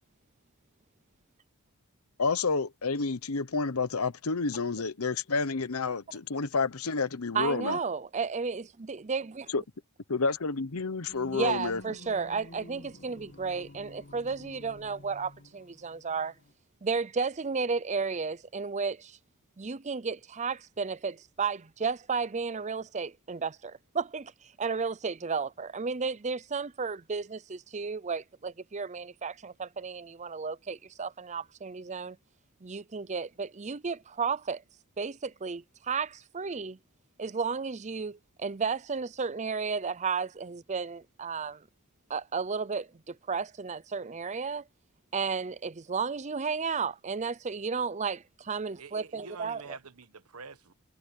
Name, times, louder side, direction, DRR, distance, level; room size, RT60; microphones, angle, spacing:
voice 1, 2.2-7.8 9.5-9.6 10.1-11.8, left 4 dB, 75° left, 1.0 m, -29 dB
voice 2, 7.3-9.5 11.3-16.3 16.8-19.2 19.6-32.2 32.6-34.6 35.0-36.8 37.2-41.6 42.1-44.6 45.1-49.6, right 5 dB, 30° right, 0.6 m, -33 dB
Singing, 11.1-16.5, left 1 dB, 55° left, 1.8 m, -50 dB
voice 3, 48.8-50.7, right 4 dB, 75° right, 1.3 m, -46 dB
head